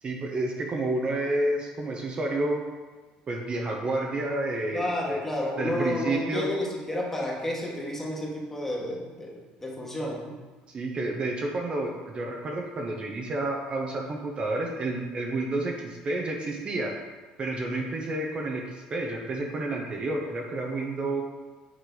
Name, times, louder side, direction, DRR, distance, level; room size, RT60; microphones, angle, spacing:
voice 1, 0.0-2.6 3.3-5.2 5.6-6.5 10.7-16.9 17.4-21.2, right 2 dB, 35° right, 0 dB, 0.9 m, -30 dB
voice 2, 4.7-10.3, left 1 dB, 10° left, -3 dB, 1.6 m, -31 dB
9.4 x 3.2 x 3.9 m, 1.3 s
supercardioid pair, 100°, 3 cm